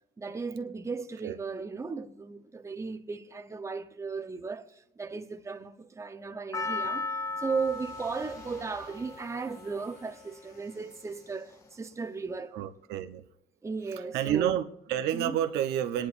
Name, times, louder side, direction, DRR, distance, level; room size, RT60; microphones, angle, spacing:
voice 1, 0.2-7.1 7.4-12.5 13.6-14.6 15.1-15.4, right 4 dB, 15° right, 0.8 m, -36 dB
Percussion, 6.5-10.9 11.5-11.6, left 3 dB, 15° left, 0.6 m, -37 dB
sound 1, 7.2-12.1, left 2 dB, 65° left, 5.2 m, -57 dB
voice 2, 12.5-13.2 14.1-16.1, right 11 dB, 80° right, 0.9 m, -29 dB
26.5 x 10.5 x 2.6 m
cardioid pair, 110°, 17 cm